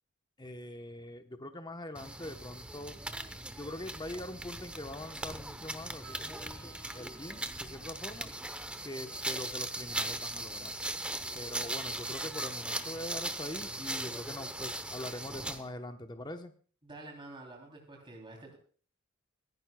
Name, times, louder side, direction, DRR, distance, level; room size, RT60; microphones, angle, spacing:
voice 1, 0.4-3.0 3.6-8.3 8.8-10.7 11.3-16.5, left 1 dB, 20° left, 7 dB, 0.9 m, -43 dB
sound 1, 2.0-15.7, right 1 dB, 5° right, 0.8 m, -39 dB
Vehicle horn car horn honking, 6.0-7.6 9.0-10.5 12.7-13.9, right 4 dB, 75° right, 7.3 m, -57 dB
voice 2, 16.8-18.6, right 2 dB, 20° right, 0 dB, 3.1 m, -48 dB
24.5 x 11.0 x 2.3 m, 0.43 s
head